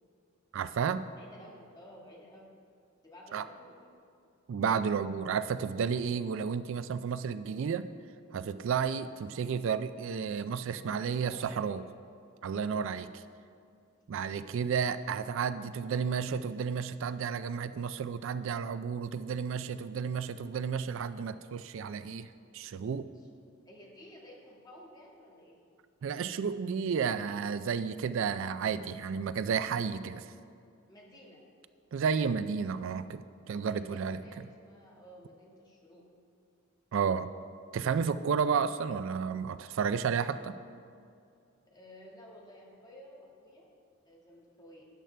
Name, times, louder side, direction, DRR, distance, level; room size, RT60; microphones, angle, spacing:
voice 1, 0.5-1.1 3.3-3.5 4.5-7.9 8.3-11.8 12.4-13.2 14.1-22.3 22.5-23.1 26.0-30.2 31.9-34.2 36.9-37.3 37.7-40.6, right 6 dB, 65° right, 13 dB, 0.3 m, -32 dB
voice 2, 1.2-2.5 3.0-3.8 10.9-11.6 12.9-13.1 23.1-23.3 23.6-25.6 30.9-31.4 33.6-36.0 41.7-43.7 44.0-44.8, equal, 20° left, -3 dB, 1.8 m, -53 dB
13.0 x 10.0 x 3.3 m, 2.3 s
head